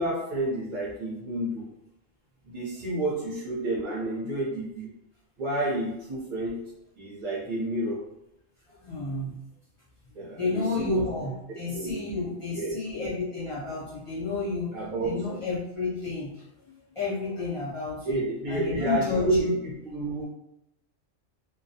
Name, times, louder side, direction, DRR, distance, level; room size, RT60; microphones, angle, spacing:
voice 1, 0.0-1.7 2.4-4.9 5.4-6.6 7.0-8.0 10.1-12.8 14.7-15.2 18.0-20.2, right 2 dB, 50° right, -5 dB, 0.6 m, -30 dB
voice 2, 8.8-9.3 10.4-14.7 15.0-18.2 18.5-19.4, left 4 dB, 45° left, -8 dB, 0.4 m, -31 dB
2.3 x 2.0 x 2.7 m, 0.84 s
omnidirectional pair, 1.4 m